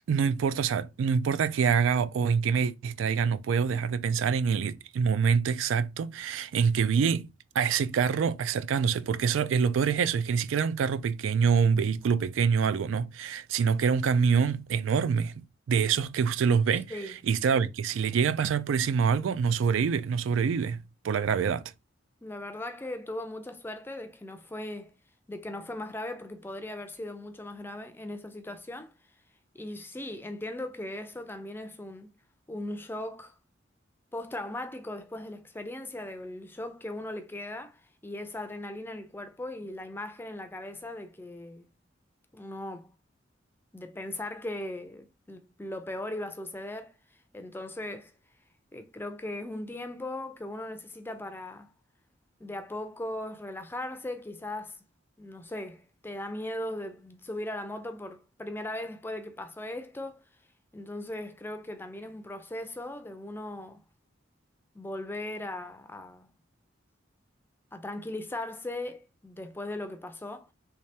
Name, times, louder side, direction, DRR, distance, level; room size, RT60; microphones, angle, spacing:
voice 1, 0.1-7.3 7.6-21.6, right 6 dB, 90° right, 0.3 m, -26 dB
voice 2, 22.2-24.9 25.3-28.9 29.5-32.1 32.5-33.4 34.1-41.7 42.3-42.9 43.7-46.9 47.3-48.1 48.7-51.7 52.4-54.8 55.2-60.2 60.7-63.8 64.7-66.3 67.7-70.5, left 1 dB, 10° left, 0.4 m, -38 dB
3.3 x 3.2 x 2.7 m
head